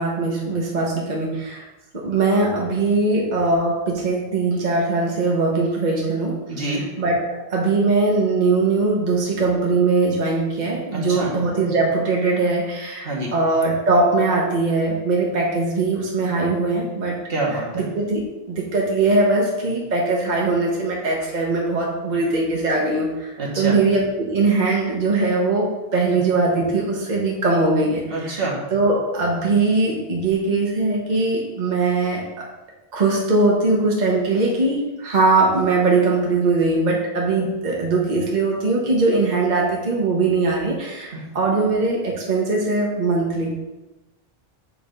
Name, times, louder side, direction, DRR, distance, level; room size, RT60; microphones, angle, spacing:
voice 1, 0.0-1.6 1.9-6.4 7.0-17.2 17.7-28.4 28.7-32.5 32.9-43.5, right 3 dB, 50° right, -2 dB, 1.1 m, -21 dB
voice 2, 6.5-6.8 10.9-11.3 13.0-13.3 17.3-17.8 23.4-23.8 28.1-28.6 41.1-41.2, right 2 dB, 70° right, -3 dB, 1.7 m, -26 dB
7.9 x 3.4 x 5.2 m, 1.1 s
omnidirectional pair, 1.0 m